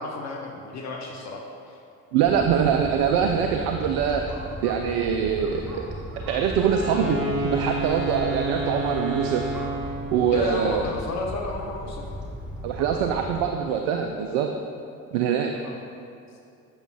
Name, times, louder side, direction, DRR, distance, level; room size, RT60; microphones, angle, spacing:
voice 1, 0.0-1.4 1.7-1.8 10.3-12.1 15.5-15.7, left 3 dB, 40° left, 1 dB, 0.7 m, -32 dB
voice 2, 2.1-4.3 4.6-5.9 6.3-9.5 10.1-10.9 12.6-14.5 15.1-15.5, right 7 dB, 55° right, 4 dB, 0.5 m, -24 dB
sound 1, 2.2-13.5, equal, ahead, 1.0 m, -37 dB
Wind instrument woodwind instrument, 6.6-10.2, right 1 dB, 80° left, 0.9 m, -29 dB
7.1 x 6.9 x 2.3 m, 2.5 s
figure-of-eight pair, 55°, 43 cm